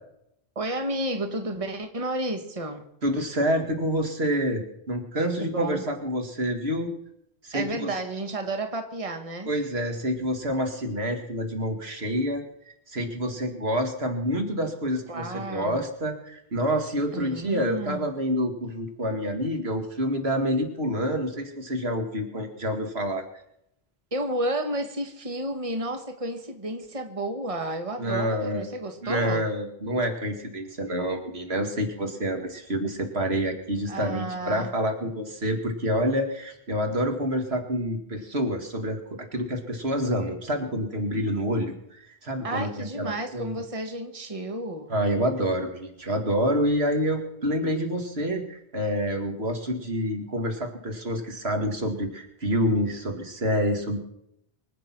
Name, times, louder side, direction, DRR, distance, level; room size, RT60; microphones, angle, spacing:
voice 1, 0.5-2.8 5.4-5.8 7.5-9.5 15.1-15.8 17.1-18.1 24.1-29.4 33.9-34.7 42.4-44.9, right 1 dB, 35° right, 1.7 m, -31 dB
voice 2, 3.0-6.9 7.4-7.9 9.5-12.4 12.9-23.2 28.0-28.7 29.0-43.5 44.9-54.0, equal, 85° right, 2.5 m, -27 dB
24.5 x 8.6 x 6.0 m
omnidirectional pair, 1.0 m